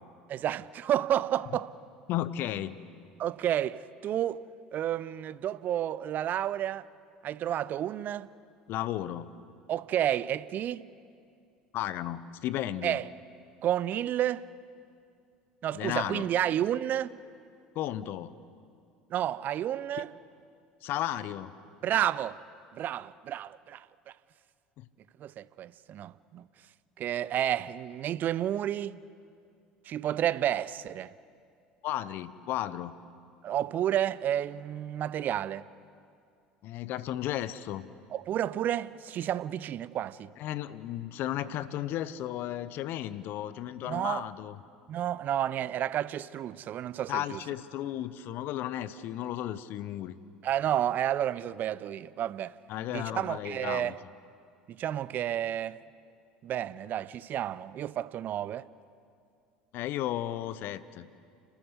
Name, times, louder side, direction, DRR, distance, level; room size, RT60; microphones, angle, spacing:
voice 1, 0.3-1.7 3.2-4.4 4.7-6.9 7.2-8.3 9.7-10.9 12.8-13.0 13.6-14.5 15.6-17.2 19.1-20.1 21.8-22.4 22.7-23.9 25.2-26.5 27.0-29.0 29.9-31.1 33.4-35.7 38.1-40.3 43.9-44.3 44.9-47.4 50.4-52.5 52.9-54.0 54.7-55.8 56.4-58.7, right 11 dB, 45° right, 0.6 m, -31 dB
voice 2, 2.1-2.8 8.7-9.3 11.7-13.0 15.7-16.3 17.7-18.3 20.0-20.1 20.8-21.6 24.8-24.9 31.8-32.9 36.6-37.9 40.4-44.6 47.1-50.2 52.7-54.0 59.7-61.1, left 12 dB, 55° left, 0.9 m, -34 dB
29.5 x 13.0 x 8.1 m
hypercardioid pair, 70°, 4 cm